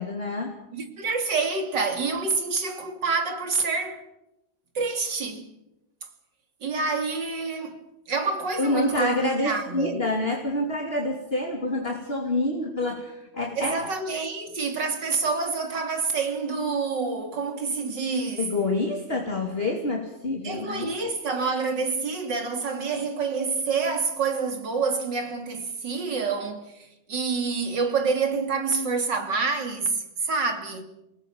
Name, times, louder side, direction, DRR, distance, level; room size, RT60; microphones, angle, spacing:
voice 1, 0.0-0.5 8.6-13.9 18.4-20.9, left 2 dB, 35° left, 2.9 m, -27 dB
voice 2, 0.7-4.0 4.8-5.5 6.6-7.8 8.1-10.0 13.6-18.5 20.4-30.8, right 4 dB, 80° right, 3.5 m, -27 dB
27.5 x 19.0 x 7.2 m
omnidirectional pair, 1.9 m